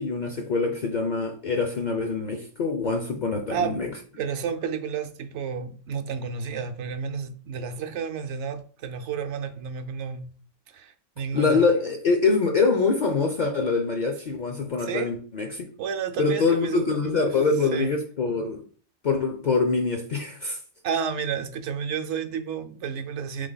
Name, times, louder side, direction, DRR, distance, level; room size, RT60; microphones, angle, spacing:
voice 1, 0.0-3.9 11.3-15.7 16.2-18.6 19.0-20.6, left 4 dB, 55° left, 0.5 m, -24 dB
voice 2, 4.2-10.3 10.7-11.7 14.8-15.1 15.8-16.8 17.7-17.9 20.8-23.5, right 6 dB, 70° right, 0.8 m, -31 dB
3.9 x 3.3 x 3.9 m
omnidirectional pair, 1.3 m